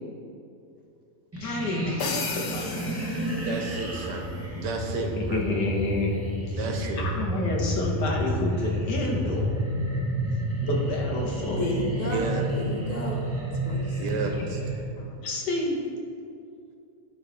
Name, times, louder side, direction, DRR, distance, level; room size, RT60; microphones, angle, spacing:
sound 1, 1.3-14.8, right 1 dB, 25° right, 0.3 m, -30 dB
voice 1, 1.4-2.7 5.2-6.1 6.5-6.6 7.0-9.5 10.6-11.8 14.3-14.4 15.0-15.8, left 2 dB, 90° left, -1 dB, 1.8 m, -29 dB
sound 2, 2.0-4.1, left 6 dB, 70° left, 1.1 m, -35 dB
voice 2, 3.4-5.4 6.6-7.0 12.0-12.5 14.0-14.6, right 3 dB, 85° right, 3 dB, 1.5 m, -31 dB
voice 3, 6.5-6.9 11.4-13.3 13.6-14.0, left 1 dB, 45° left, -1 dB, 0.6 m, -33 dB
11.0 x 4.0 x 3.9 m, 2.5 s
omnidirectional pair, 1.8 m